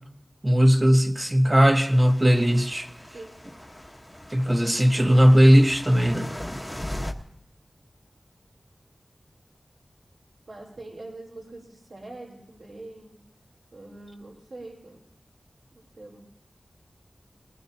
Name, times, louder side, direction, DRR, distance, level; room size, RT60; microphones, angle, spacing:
voice 1, 0.4-2.9 4.3-6.2, equal, 25° right, 5 dB, 1.3 m, -18 dB
Kiholo Bay Rocky Break, 1.9-7.1, left 1 dB, 10° left, 1.3 m, -38 dB
voice 2, 10.5-13.1 13.7-15.0 15.7-16.2, right 2 dB, 90° right, -7 dB, 4.2 m, -43 dB
21.0 x 18.5 x 2.9 m, 0.78 s
wide cardioid pair, 55°, 0 cm